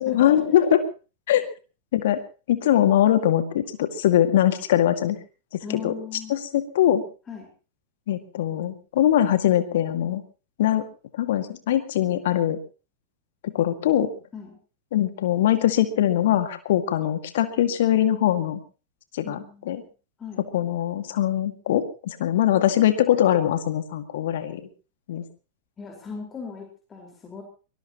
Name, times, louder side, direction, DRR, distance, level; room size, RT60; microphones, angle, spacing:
voice 1, 0.0-0.8 1.3-1.5 1.9-2.2 2.5-5.2 5.7-5.9 6.3-7.0 8.1-10.2 10.6-10.9 11.1-12.6 13.4-14.1 14.9-18.6 19.1-19.4 19.7-19.8 20.5-24.6 25.1-25.2, left 11 dB, 55° left, 9 dB, 2.1 m, -22 dB
voice 2, 5.6-6.4 7.3-7.5 14.3-14.6 19.2-19.9 20.2-20.5 25.8-27.4, left 6 dB, 20° left, 1 dB, 4.7 m, -38 dB
23.5 x 20.0 x 3.0 m, 0.35 s
figure-of-eight pair, 90°, 0 cm